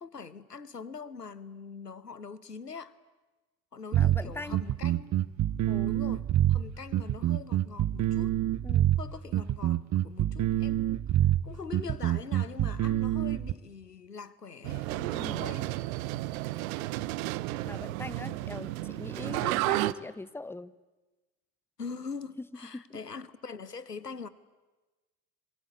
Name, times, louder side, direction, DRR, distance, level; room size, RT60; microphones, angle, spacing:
voice 1, 0.0-3.0 3.7-5.2 5.8-8.4 9.0-11.0 11.4-15.8 21.8-24.3, left 5 dB, 90° left, 1.0 m, -43 dB
voice 2, 3.9-4.6 5.7-6.0 8.6-8.9 15.1-15.5 17.6-20.7 22.7-23.0, left 2 dB, 5° left, 0.9 m, -41 dB
sound 1, 3.9-13.5, right 12 dB, 35° right, 0.9 m, -26 dB
sound 2, 14.6-19.9, right 18 dB, 60° right, 0.9 m, -32 dB
26.5 x 23.0 x 8.2 m
figure-of-eight pair, 60°, 47 cm